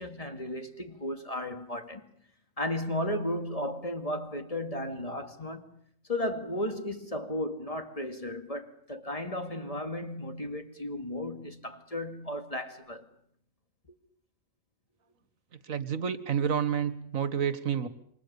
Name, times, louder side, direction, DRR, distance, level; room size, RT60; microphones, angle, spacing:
voice 1, 0.0-2.1 2.6-5.8 6.1-13.1, left 1 dB, 25° left, 2.3 m, -34 dB
voice 2, 15.6-17.9, right 8 dB, 85° right, 1.9 m, -29 dB
28.0 x 24.5 x 7.0 m
omnidirectional pair, 1.4 m